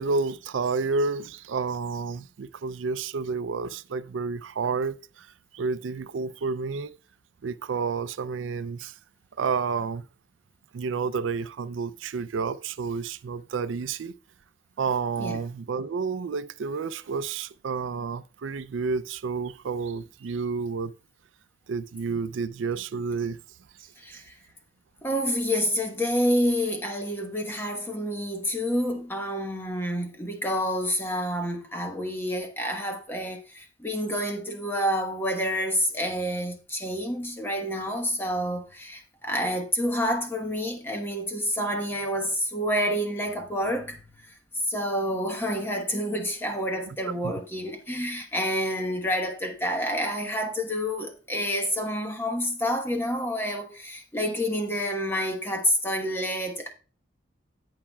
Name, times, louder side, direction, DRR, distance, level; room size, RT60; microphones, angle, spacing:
voice 1, 0.0-5.3 5.5-6.9 7.4-8.9 9.4-10.0 10.7-14.1 14.8-20.9 21.7-23.4 46.9-47.0 47.2-47.3, right 4 dB, 85° right, 0.4 m, -30 dB
voice 2, 24.0-24.3 25.0-44.0 44.7-56.7, equal, 10° left, 1.1 m, -28 dB
17.0 x 5.7 x 2.3 m
head